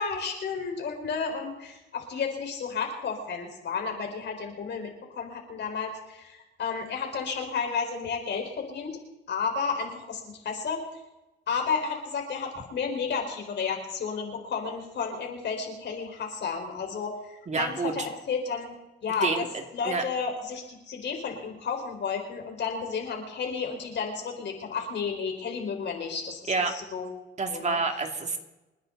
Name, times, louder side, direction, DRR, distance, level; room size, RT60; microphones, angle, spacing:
voice 1, 0.0-9.0 9.3-10.8 11.5-18.8 19.0-19.5 19.7-27.0 27.5-27.8, left 5 dB, 60° left, 2 dB, 4.7 m, -32 dB
voice 2, 17.5-17.9 19.2-20.0 26.5-26.8 27.4-28.4, right 4 dB, 35° right, 4 dB, 2.5 m, -28 dB
29.0 x 10.0 x 4.0 m, 1.0 s
cardioid pair, 90°, 20 cm